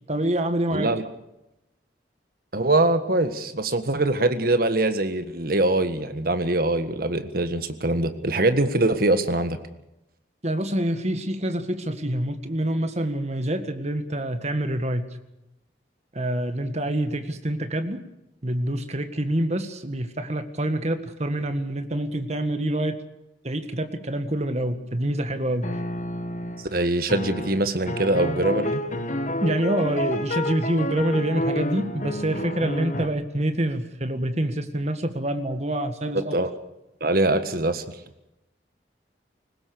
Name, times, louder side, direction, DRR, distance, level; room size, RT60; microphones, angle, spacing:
voice 1, 0.1-0.9 10.4-15.0 16.1-18.0 18.4-23.0 23.4-25.7 29.4-36.4, right 1 dB, 35° right, 8 dB, 1.8 m, -26 dB
voice 2, 0.7-1.0 2.5-9.6 26.7-28.8 36.1-36.5 37.0-37.8, right 2 dB, 55° right, 10 dB, 1.6 m, -23 dB
sound 1, 25.6-26.7 27.1-33.1, left 1 dB, 40° left, 1.5 m, -29 dB
21.5 x 19.5 x 6.9 m, 0.89 s
head